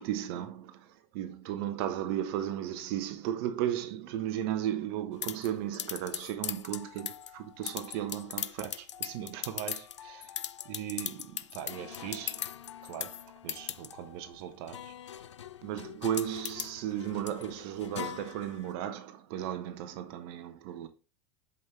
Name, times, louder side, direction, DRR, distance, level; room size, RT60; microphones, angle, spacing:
voice 1, 0.0-10.3 10.6-12.4 12.8-14.9 15.6-20.9, right 11 dB, 55° right, 1.1 m, -36 dB
sound 1, 5.2-18.7, left 9 dB, 85° left, 0.4 m, -40 dB
7.9 x 5.4 x 3.3 m
hypercardioid pair, 90°, 15 cm